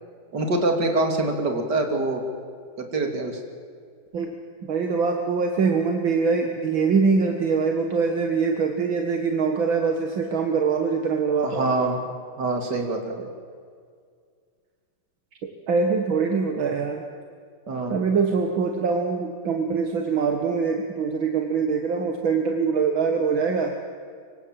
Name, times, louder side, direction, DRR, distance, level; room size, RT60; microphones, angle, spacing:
voice 1, 0.3-2.2 2.8-3.4 11.4-12.1 12.4-13.3 17.7-18.1, right 2 dB, 55° right, 4 dB, 3.6 m, -25 dB
voice 2, 4.7-11.7 15.7-17.0 17.9-23.7, right 5 dB, 75° right, 4 dB, 2.4 m, -23 dB
25.5 x 24.5 x 7.8 m, 2.1 s
omnidirectional pair, 2.2 m